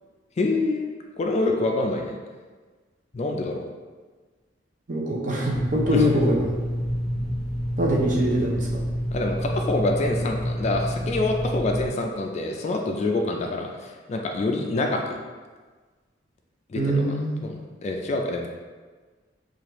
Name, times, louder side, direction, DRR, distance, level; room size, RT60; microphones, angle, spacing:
voice 1, 0.4-0.9 1.2-2.2 3.1-3.6 5.9-6.2 9.1-13.7 14.1-15.2 16.7-18.5, left 2 dB, 35° left, 2 dB, 0.3 m, -26 dB
voice 2, 4.9-6.5 7.8-8.7 16.8-17.5, equal, 45° right, -2 dB, 0.6 m, -23 dB
sound 1, 5.5-11.9, equal, 5° left, 0.9 m, -28 dB
4.8 x 2.5 x 3.0 m, 1.4 s
head